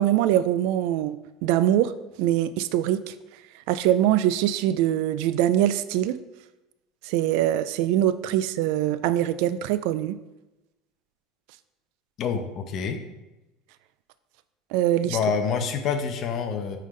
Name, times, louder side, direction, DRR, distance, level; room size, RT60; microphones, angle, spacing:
voice 1, 0.0-1.9 2.2-3.1 3.7-6.2 7.0-10.2 14.7-15.2, right 12 dB, 70° right, 14 dB, 0.3 m, -23 dB
voice 2, 12.2-13.0 15.0-16.8, left 6 dB, 40° left, 6 dB, 0.8 m, -27 dB
8.9 x 3.8 x 3.2 m, 1.0 s
cardioid pair, 150°, 0 cm